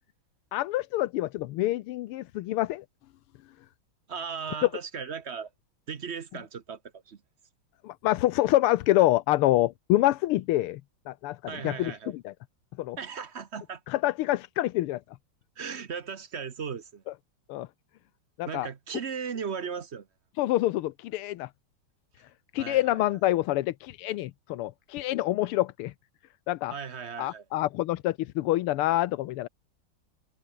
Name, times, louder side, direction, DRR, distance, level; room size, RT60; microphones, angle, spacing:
voice 1, 0.5-2.8 7.8-10.8 11.1-12.3 12.8-13.0 13.9-15.0 17.5-17.7 18.4-18.7 20.4-21.5 22.5-25.9 26.5-26.7 27.2-29.5, left 16 dB, 90° left, 1.6 m, -26 dB
voice 2, 4.1-5.5 5.9-7.2 11.5-12.1 13.0-13.8 15.6-17.0 18.5-20.1 22.6-23.0 26.7-27.4, right 6 dB, 45° right, 1.0 m, -37 dB
omnidirectional pair, 2.4 m